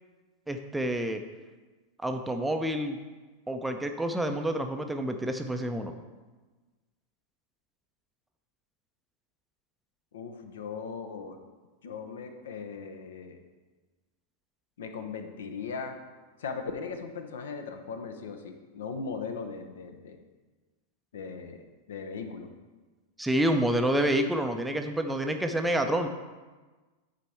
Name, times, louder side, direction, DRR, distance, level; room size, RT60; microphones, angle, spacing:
voice 1, 0.5-1.2 2.0-3.0 3.5-5.9 23.2-26.1, right 1 dB, 5° right, 5 dB, 0.5 m, -28 dB
voice 2, 10.1-11.4 11.8-13.4 14.8-16.0 16.4-20.2 21.1-22.5, left 5 dB, 60° left, 7 dB, 0.7 m, -38 dB
9.8 x 4.3 x 4.5 m, 1.3 s
figure-of-eight pair, 90°, 0 cm